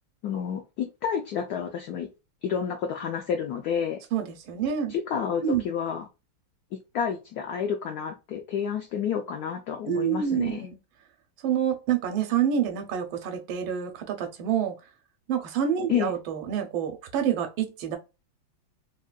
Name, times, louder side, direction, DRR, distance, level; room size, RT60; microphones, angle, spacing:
voice 1, 0.2-2.1 2.4-4.0 4.9-6.0 6.9-10.7 15.9-16.1, left 7 dB, 80° left, 0.8 m, -30 dB
voice 2, 4.1-4.9 5.4-5.7 9.9-10.8 11.4-14.8 15.3-18.0, right 8 dB, 85° right, 1.4 m, -27 dB
3.7 x 2.2 x 2.3 m
omnidirectional pair, 2.2 m